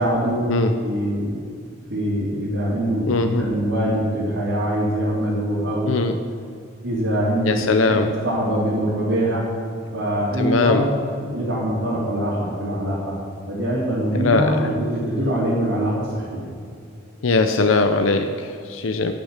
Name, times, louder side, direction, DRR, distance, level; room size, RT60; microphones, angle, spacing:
voice 1, 0.0-0.4 0.8-1.4 1.9-5.9 6.8-7.7 8.0-9.5 9.9-10.8 11.3-13.2 13.5-16.5, right 1 dB, 75° right, -10 dB, 3.7 m, -23 dB
voice 2, 3.1-3.5 5.9-6.1 7.5-8.1 10.4-10.8 14.2-14.7 17.2-19.1, left 3 dB, 80° left, 6 dB, 0.7 m, -20 dB
12.0 x 6.5 x 8.2 m, 2.3 s
head